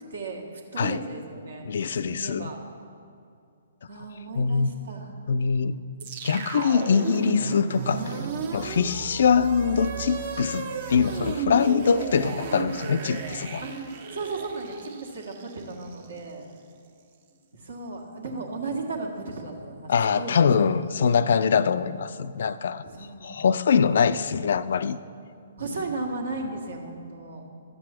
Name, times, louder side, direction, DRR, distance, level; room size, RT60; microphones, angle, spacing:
voice 1, 0.1-1.7 2.0-2.6 3.9-5.1 5.8-5.9 13.6-13.8 14.1-16.5 17.5-20.7 22.8-23.3 25.6-27.5, right 3 dB, 65° right, 2 dB, 1.6 m, -35 dB
voice 2, 1.7-2.5 4.4-4.7 5.3-5.8 6.2-8.2 8.5-13.6 19.9-22.9 23.2-25.0, left 6 dB, 55° left, 14 dB, 0.3 m, -23 dB
sound 1, 6.0-16.2, right 4 dB, 45° right, 0.9 m, -34 dB
12.5 x 7.7 x 4.4 m, 2.5 s
figure-of-eight pair, 125°, 0 cm